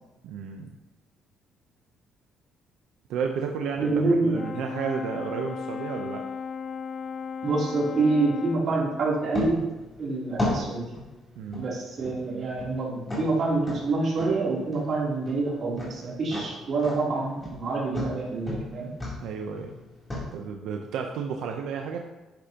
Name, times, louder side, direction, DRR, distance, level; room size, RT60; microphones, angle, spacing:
voice 1, 0.2-0.7 3.1-3.9 4.2-6.2 11.4-11.7 19.2-19.7 20.3-22.0, right 6 dB, 90° right, 2 dB, 0.8 m, -32 dB
voice 2, 3.7-4.4 7.4-9.6 10.0-10.9 11.6-18.9, right 3 dB, 45° right, -5 dB, 3.4 m, -26 dB
Brass instrument, 4.3-8.7, left 6 dB, 35° left, 0.3 m, -35 dB
sound 1, 9.3-20.2, left 1 dB, 15° left, 3.5 m, -36 dB
10.5 x 10.5 x 3.0 m, 1.1 s
cardioid pair, 150°, 0 cm